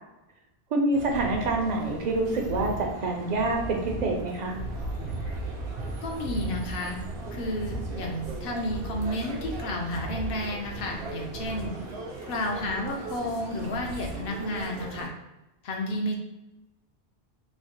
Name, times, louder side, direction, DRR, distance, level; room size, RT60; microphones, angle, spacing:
voice 1, 0.7-4.6, right 2 dB, 55° right, 1 dB, 0.5 m, -27 dB
sound 1, 0.9-15.1, right 2 dB, 80° right, 0.9 m, -36 dB
voice 2, 6.0-7.0 7.3-11.7 12.3-15.1 15.6-16.2, left 1 dB, 70° left, 1 dB, 0.7 m, -31 dB
3.0 x 2.0 x 2.8 m, 0.98 s
omnidirectional pair, 1.0 m